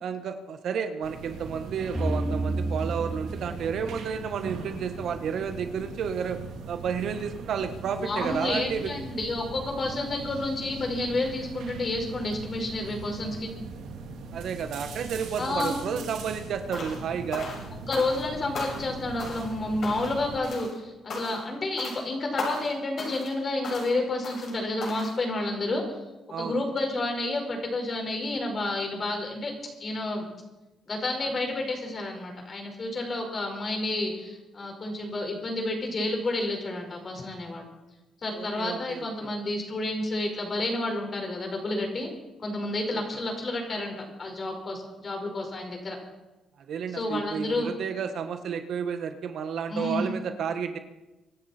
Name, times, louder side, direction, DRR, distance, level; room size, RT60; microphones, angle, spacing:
voice 1, 0.0-6.4 6.7-8.9 14.3-17.5 26.3-26.5 38.3-39.3 42.9-43.0 46.7-50.8, right 7 dB, 70° right, 8 dB, 1.5 m, -31 dB
sound 1, 1.0-20.4, right 3 dB, 85° right, 2.5 m, -40 dB
sound 2, 1.9-4.9, right 2 dB, ahead, 2.9 m, -31 dB
voice 2, 8.0-13.5 15.4-15.8 17.9-25.8 26.4-29.5 29.8-30.3 30.9-37.6 38.2-42.1 42.4-46.0 46.9-47.7 49.7-50.1, left 2 dB, 40° left, 2 dB, 5.2 m, -30 dB
sound 3, 16.7-17.0 17.3-18.3 18.5-18.9 19.2-19.5 19.8-20.2 20.4-20.8 21.1-21.5 21.8-22.0 22.4-22.7 23.0-23.3 23.6-23.9 24.2-24.5 24.8-25.2, left 3 dB, 60° left, 6.9 m, -36 dB
25.0 x 12.0 x 4.5 m, 1.1 s
cardioid pair, 90°, 0 cm